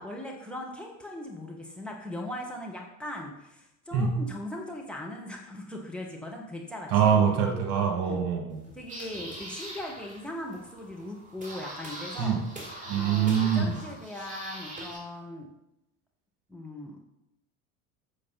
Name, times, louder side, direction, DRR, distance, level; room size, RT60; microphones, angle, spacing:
voice 1, 0.0-7.1 8.0-8.3 8.7-12.4 13.0-15.5 16.5-17.0, left 1 dB, ahead, 1 dB, 1.8 m, -39 dB
voice 2, 6.9-8.6 12.2-12.4 12.9-13.8, right 7 dB, 45° right, 3 dB, 2.7 m, -24 dB
sound 1, 8.5-15.0, right 1 dB, 20° right, 3.8 m, -42 dB
13.0 x 7.5 x 4.3 m, 0.86 s
figure-of-eight pair, 75°, 43 cm